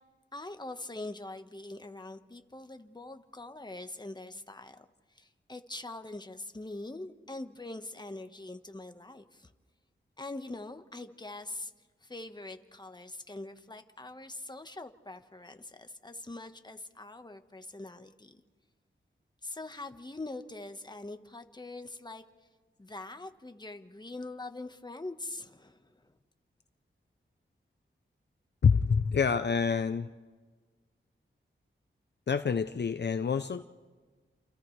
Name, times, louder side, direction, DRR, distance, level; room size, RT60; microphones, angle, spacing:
voice 1, 0.3-9.5 10.2-11.7 12.0-18.4 19.4-22.2 22.8-26.2, left 2 dB, 20° left, 7 dB, 1.3 m, -43 dB
voice 2, 28.6-30.1 32.3-33.6, left 6 dB, 55° left, 10 dB, 0.6 m, -27 dB
29.5 x 28.0 x 3.3 m, 1.4 s
cardioid pair, 55°, 21 cm